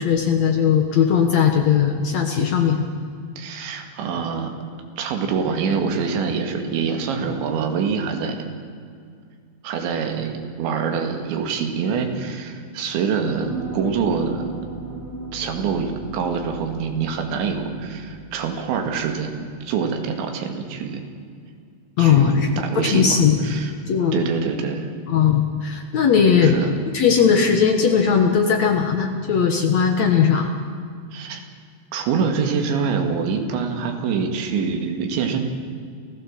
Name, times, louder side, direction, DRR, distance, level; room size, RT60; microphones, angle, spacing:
voice 1, 0.0-2.8 22.0-23.4 23.9-24.2 25.1-26.5 26.9-30.5, left 7 dB, 70° left, 4 dB, 1.7 m, -18 dB
voice 2, 3.4-4.6 5.0-8.4 9.6-14.6 15.3-21.0 22.0-23.7 24.1-24.9 26.4-26.7 31.1-31.4 31.9-35.5, right 6 dB, 80° right, 4 dB, 4.4 m, -25 dB
sound 1, 13.1-19.2 19.6-19.7, right 2 dB, 50° right, 9.0 m, -36 dB
28.0 x 15.5 x 7.5 m, 2.2 s
omnidirectional pair, 5.2 m